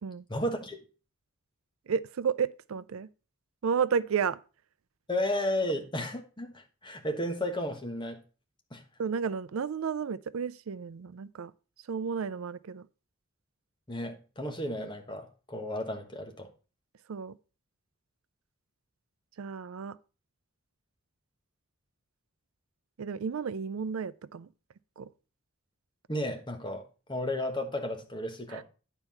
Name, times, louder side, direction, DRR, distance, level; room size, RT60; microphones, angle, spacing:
voice 1, 0.3-0.8 5.1-8.2 8.7-8.8 13.9-16.5 26.1-26.8 27.1-28.6, left 1 dB, 20° left, 1.3 m, -33 dB
voice 2, 1.9-3.1 3.6-4.4 9.0-11.5 11.9-12.9 17.1-17.4 19.4-20.0 23.0-24.5 25.0-25.1 28.5-28.6, right 6 dB, 80° right, 0.4 m, -32 dB
9.9 x 4.5 x 5.6 m
head